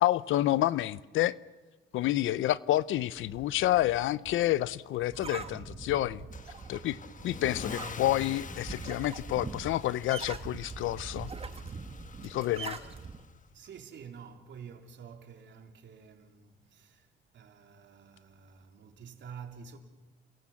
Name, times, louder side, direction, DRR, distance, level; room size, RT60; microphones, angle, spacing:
voice 1, 0.0-1.4 1.9-6.2 6.7-7.0 7.2-11.3 12.2-12.8, left 14 dB, 85° left, 0.7 m, -29 dB
sound 1, 3.2-13.2, right 4 dB, 30° right, 1.7 m, -43 dB
Car / Engine starting / Accelerating revving vroom, 6.3-13.4, left 6 dB, 40° left, 1.3 m, -46 dB
voice 2, 13.5-19.8, right 6 dB, 65° right, 3.5 m, -49 dB
30.0 x 22.5 x 7.3 m
cardioid pair, 90°, 20 cm